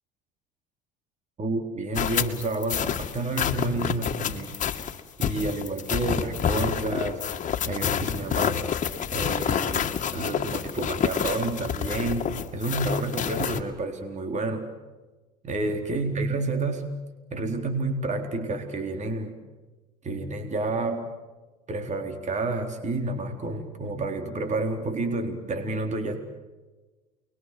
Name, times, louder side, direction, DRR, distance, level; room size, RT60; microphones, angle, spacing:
voice 1, 1.4-4.6 5.2-7.2 7.7-8.6 9.1-12.2 12.5-14.7 15.4-16.9 17.3-19.4 20.0-21.1 21.7-26.2, right 2 dB, 40° right, 5 dB, 4.1 m, -29 dB
sound 1, 1.9-13.6, left 8 dB, 40° left, 2.5 m, -28 dB
29.5 x 23.0 x 7.8 m, 1.2 s
supercardioid pair, 80°, 19 cm